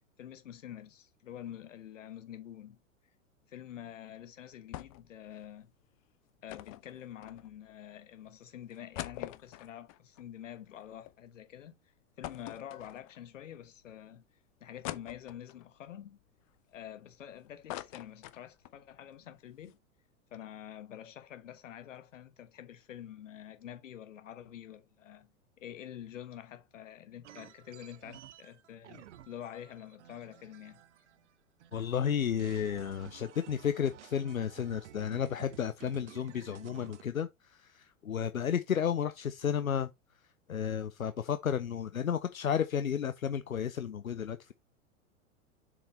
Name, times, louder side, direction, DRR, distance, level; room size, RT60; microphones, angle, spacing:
voice 1, 0.2-2.8 3.5-5.7 6.4-11.7 12.2-14.2 14.6-16.2 16.7-19.8 20.3-25.3 25.6-30.8, left 10 dB, 65° left, 1.4 m, -47 dB
sound 1, 4.7-5.2 5.4-5.5 6.5-7.8 8.3-8.4 8.7-11.1 11.5-11.6 12.2-13.4 13.9-14.0 14.8-15.7 16.2-17.2 17.5-18.8 19.2-19.3 19.5-19.7, left 16 dB, 30° left, 0.4 m, -44 dB
sound 2, 27.2-31.3 31.6-37.0, right 11 dB, 60° right, 0.8 m, -54 dB
voice 2, 31.7-39.9 40.5-44.5, left 8 dB, 85° left, 0.6 m, -32 dB
7.0 x 4.9 x 3.1 m
figure-of-eight pair, 95°, 40 cm